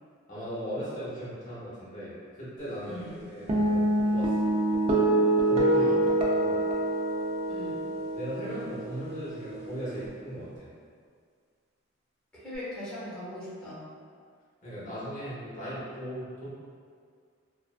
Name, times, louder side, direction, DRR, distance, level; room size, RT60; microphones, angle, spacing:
voice 1, 0.3-4.4 5.5-6.1 6.4-6.6 8.1-10.7 14.6-16.5, equal, 40° left, -10 dB, 0.7 m, -38 dB
sound 1, 3.5-10.1, right 1 dB, 30° right, 0.3 m, -26 dB
voice 2, 7.5-7.8 12.3-13.8, left 1 dB, 5° left, -10 dB, 0.7 m, -40 dB
2.3 x 2.2 x 2.4 m, 2.1 s
head